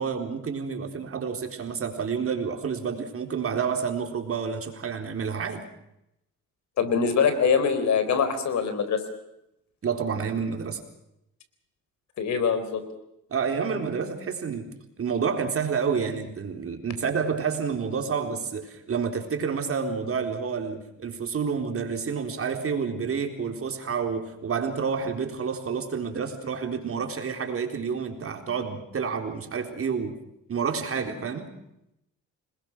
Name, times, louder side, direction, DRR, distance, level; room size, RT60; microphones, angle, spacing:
voice 1, 0.0-5.6 9.8-10.8 13.3-14.7 15.0-30.1 30.5-31.5, right 6 dB, 50° right, 5 dB, 4.0 m, -29 dB
voice 2, 6.8-9.0 12.2-12.8, left 6 dB, 65° left, 10 dB, 4.1 m, -23 dB
27.0 x 21.0 x 6.2 m, 0.83 s
cardioid pair, 90°, 30 cm